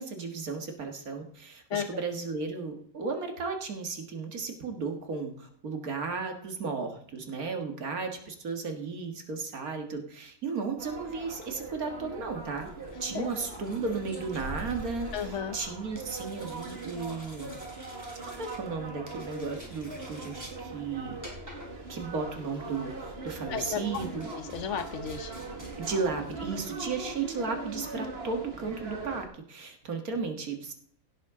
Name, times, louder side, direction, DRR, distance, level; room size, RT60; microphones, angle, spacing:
voice 1, 0.0-12.7 13.0-17.6 18.3-21.2 21.9-24.3 25.8-30.7, right 4 dB, 85° right, 4 dB, 2.2 m, -34 dB
voice 2, 1.7-2.0 13.1-13.3 15.1-15.6 23.5-24.0 24.3-25.3, left 8 dB, 60° left, 9 dB, 1.3 m, -34 dB
sound 1, 10.8-29.3, right 3 dB, 45° right, 2.1 m, -41 dB
sound 2, 11.2-27.2, right 1 dB, 10° right, 3.5 m, -51 dB
16.5 x 7.9 x 3.7 m, 0.65 s
omnidirectional pair, 1.5 m